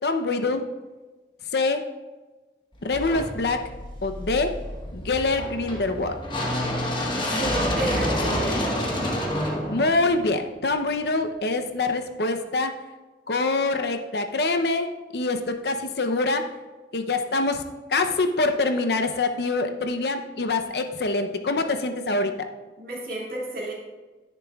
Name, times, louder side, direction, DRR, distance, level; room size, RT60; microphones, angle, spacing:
voice 1, 0.0-0.6 1.5-1.8 2.8-3.6 4.0-4.5 4.9-6.1 9.7-12.7 13.3-14.9 15.1-16.4 16.9-17.6 17.9-22.3, left 3 dB, 65° left, 6 dB, 0.6 m, -25 dB
sound 1, 2.9-11.0, left 1 dB, 25° left, 1.1 m, -28 dB
voice 2, 7.3-8.8 22.8-23.7, right 1 dB, 55° right, -3 dB, 2.3 m, -31 dB
10.5 x 10.0 x 2.3 m, 1.2 s
head